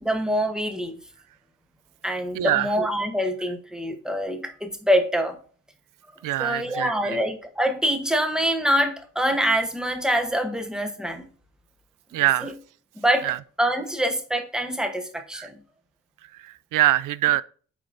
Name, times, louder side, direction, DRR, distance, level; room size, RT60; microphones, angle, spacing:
voice 1, 0.0-1.0 2.0-5.4 6.1-11.3 12.4-12.5 13.0-13.3 13.6-15.6, equal, ahead, 1.1 m, -25 dB
voice 2, 2.3-2.7 6.2-7.2 12.1-12.5 13.2-13.4 15.3-15.5 16.3-17.4, right 14 dB, 85° right, 0.5 m, -24 dB
8.2 x 5.7 x 2.6 m
cardioid pair, 145°, 31 cm